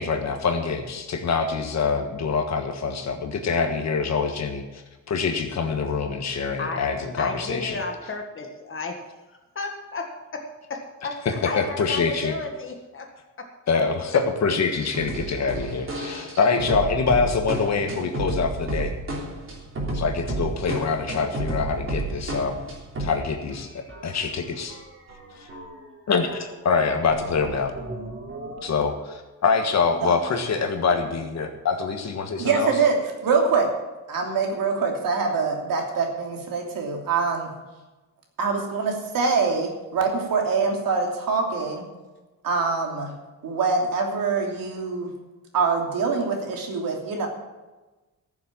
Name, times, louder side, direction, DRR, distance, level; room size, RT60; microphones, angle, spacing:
voice 1, 0.0-4.8 5.1-7.8 11.2-12.3 13.7-18.9 19.9-22.6 23.0-23.5 24.0-24.8 25.4-25.5 26.1-27.7 28.6-32.7, left 5 dB, 55° left, 5 dB, 1.5 m, -25 dB
voice 2, 7.2-9.0 9.3-11.2 11.4-13.1 13.4-13.5, left 3 dB, 40° left, 3 dB, 1.7 m, -33 dB
sound 1, 14.8-23.2 23.5-23.6 23.9-25.9 26.2-28.6, right 2 dB, 40° right, 3.3 m, -32 dB
voice 3, 32.4-33.0 33.2-33.7 34.1-37.5 38.4-41.8 42.4-43.2 43.4-45.1 45.5-47.3, right 4 dB, 90° right, 2 dB, 3.0 m, -24 dB
14.5 x 7.4 x 7.5 m, 1.2 s
wide cardioid pair, 160°, 33 cm